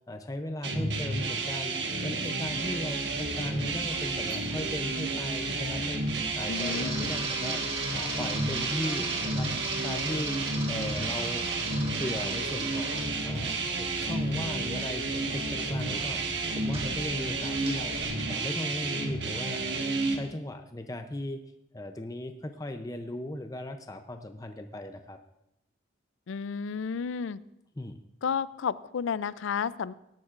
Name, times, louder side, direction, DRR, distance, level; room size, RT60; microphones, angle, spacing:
voice 1, 0.1-1.8 2.0-9.5 9.8-10.4 10.7-11.4 12.0-16.2 16.6-18.0 18.3-19.8 20.1-21.4 21.7-25.2 27.8-28.0, left 1 dB, 20° left, 6 dB, 0.5 m, -37 dB
sound 1, 0.6-20.2, right 3 dB, 60° right, 1.4 m, -31 dB
Camera, 2.5-18.0, right 2 dB, 30° right, 1.9 m, -40 dB
voice 2, 6.5-6.9 26.3-27.4 28.2-29.9, left 6 dB, 85° left, 17 dB, 0.4 m, -31 dB
18.0 x 12.0 x 2.5 m, 0.84 s
head